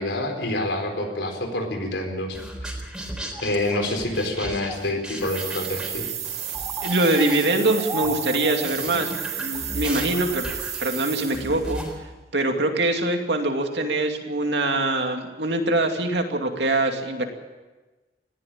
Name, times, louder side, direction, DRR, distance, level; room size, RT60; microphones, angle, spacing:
voice 1, 0.0-2.5 3.4-6.1, left 1 dB, 85° left, 4 dB, 4.4 m, -27 dB
sound 1, 2.3-12.0, right 1 dB, 5° right, 4.0 m, -35 dB
sound 2, 5.2-11.6, right 10 dB, 40° right, 1.6 m, -32 dB
voice 2, 6.8-10.4 10.8-11.8 12.3-17.3, right 2 dB, 75° right, 4 dB, 2.6 m, -23 dB
20.0 x 15.5 x 8.7 m, 1.2 s
head